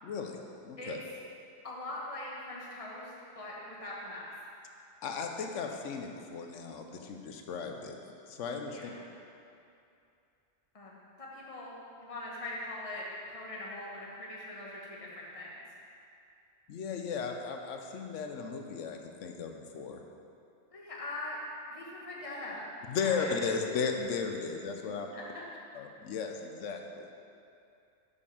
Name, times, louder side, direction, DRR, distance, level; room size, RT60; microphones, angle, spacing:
voice 1, 0.0-1.0 5.0-7.9 8.3-8.9 16.7-20.0 22.9-25.1 25.7-27.1, left 5 dB, 90° left, 3 dB, 1.0 m, -36 dB
voice 2, 1.6-4.3 8.7-9.0 10.7-11.7 12.0-15.6 20.7-21.4 21.7-23.4 25.1-25.3, left 1 dB, 30° left, -4 dB, 1.2 m, -42 dB
6.7 x 5.2 x 5.4 m, 2.6 s
omnidirectional pair, 1.2 m